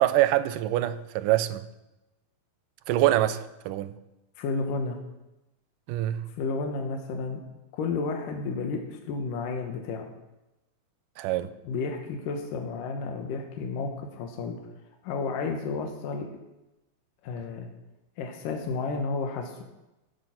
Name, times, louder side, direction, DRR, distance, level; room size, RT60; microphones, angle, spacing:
voice 1, 0.0-1.7 2.9-4.0 5.9-6.2 11.2-11.5, right 14 dB, 85° right, 2.3 m, -25 dB
voice 2, 4.4-5.0 6.3-7.4 7.7-10.1 11.7-14.6 15.0-16.3 17.2-17.7 18.2-19.6, left 4 dB, 80° left, 2.9 m, -32 dB
16.5 x 8.1 x 5.8 m
omnidirectional pair, 3.8 m